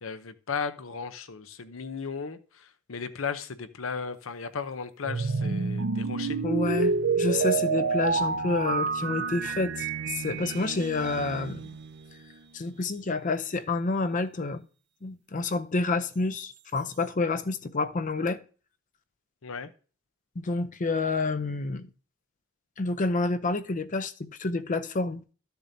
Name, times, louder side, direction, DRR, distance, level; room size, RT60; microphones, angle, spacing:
voice 1, 0.0-6.4 19.4-19.7, left 5 dB, 75° left, 0.7 m, -36 dB
sound 1, 5.0-12.3, right 4 dB, 60° right, 0.5 m, -29 dB
voice 2, 6.4-11.6 12.5-14.7 15.0-18.4 20.4-21.9 22.8-25.2, left 3 dB, 40° left, 0.6 m, -29 dB
13.0 x 6.9 x 2.7 m
head